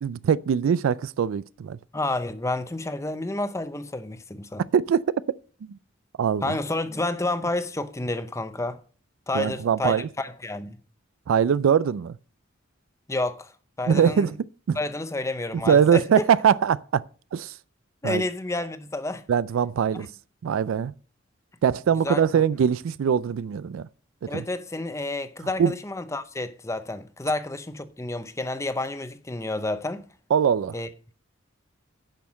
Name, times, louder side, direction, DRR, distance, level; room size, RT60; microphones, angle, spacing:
voice 1, 0.0-1.8 4.7-5.0 5.7-5.8 6.2-6.6 9.3-10.1 11.3-12.2 13.9-14.4 14.7-14.8 15.7-17.0 17.3-17.5 18.0-18.2 19.3-20.1 20.4-20.9 21.6-23.9 24.3-24.4 25.6-25.7 30.3-30.7, right 7 dB, 80° right, 0.3 m, -22 dB
voice 2, 1.9-4.6 6.4-8.8 9.3-10.8 13.1-13.5 13.8-14.3 14.8-16.0 18.0-19.2 22.0-22.2 24.3-30.0 30.7-30.9, left 2 dB, 15° left, 0.6 m, -30 dB
10.5 x 5.6 x 6.2 m
head